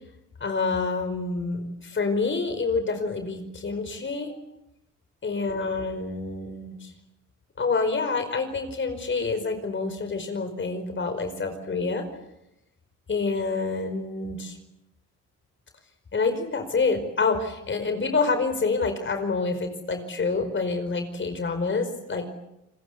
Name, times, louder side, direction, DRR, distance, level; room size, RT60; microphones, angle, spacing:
voice 1, 0.4-4.4 5.2-6.9 7.6-12.0 13.1-14.5 16.1-22.3, left 4 dB, 40° left, 7 dB, 5.0 m, -27 dB
30.0 x 21.0 x 8.3 m, 0.88 s
cardioid pair, 90°, 30 cm